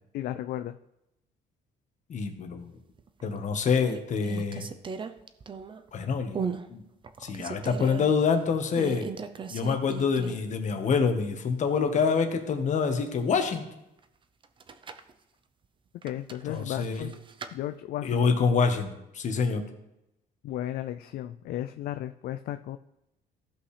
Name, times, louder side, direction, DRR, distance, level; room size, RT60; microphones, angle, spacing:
voice 1, 0.1-0.8 16.0-17.1 17.5-18.4 20.4-22.8, left 12 dB, 65° left, 9 dB, 0.4 m, -34 dB
voice 2, 2.1-2.7 3.2-4.7 5.9-6.4 6.7-6.8 7.2-9.1 9.5-13.6 16.4-17.1 18.0-19.7, left 5 dB, 45° left, 5 dB, 1.4 m, -26 dB
sound 1, 3.0-3.4 3.8-5.9 6.3-6.7 7.0-8.1 8.7-10.5 10.8-10.9 14.4-15.1 16.0-17.5, right 5 dB, 30° right, 0.6 m, -37 dB
15.0 x 5.6 x 3.3 m, 0.89 s
cardioid pair, 110°, 17 cm